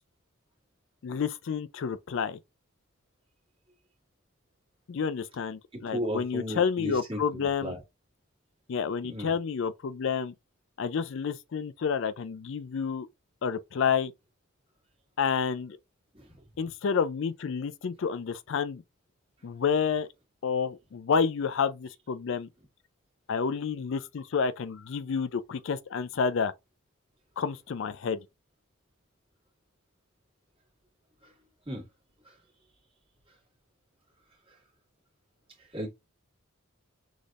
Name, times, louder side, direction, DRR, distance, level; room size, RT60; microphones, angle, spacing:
voice 1, 1.0-2.4 4.9-7.8 8.7-10.3 10.8-13.1 13.4-14.1 15.2-15.8 16.6-18.8 19.4-20.1 20.4-22.5 23.3-26.5 27.4-28.2, left 6 dB, 55° left, 0.4 m, -29 dB
voice 2, 5.7-7.8 9.1-9.3 16.1-16.2 31.7-31.9 35.7-35.9, equal, 25° right, 1.9 m, -35 dB
6.2 x 3.5 x 2.4 m
head